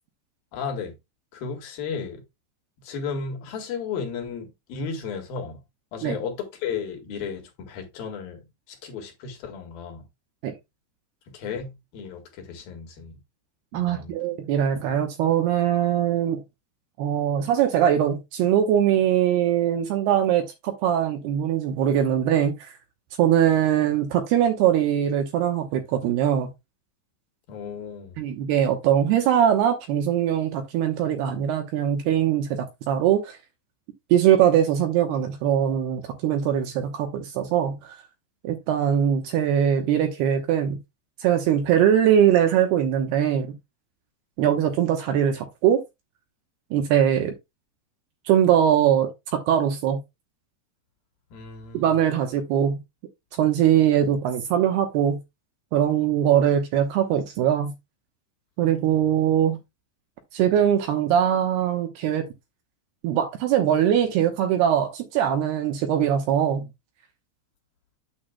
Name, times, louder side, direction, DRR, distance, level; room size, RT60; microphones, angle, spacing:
voice 1, 0.5-0.9 1.3-2.2 2.8-5.6 5.9-10.0 11.3-13.1 13.7-14.2 27.5-28.2 51.3-51.9 58.9-59.1, left 6 dB, 60° left, 3.1 m, -34 dB
voice 2, 13.7-16.4 17.0-22.8 23.2-26.5 28.2-33.4 34.1-38.0 38.4-40.8 41.2-43.5 44.4-45.8 46.7-47.3 48.3-50.0 51.7-52.8 53.3-55.2 55.7-57.7 58.6-59.6 60.3-62.3 63.0-66.6, right 10 dB, 70° right, 2.7 m, -21 dB
8.8 x 7.9 x 2.2 m
omnidirectional pair, 5.3 m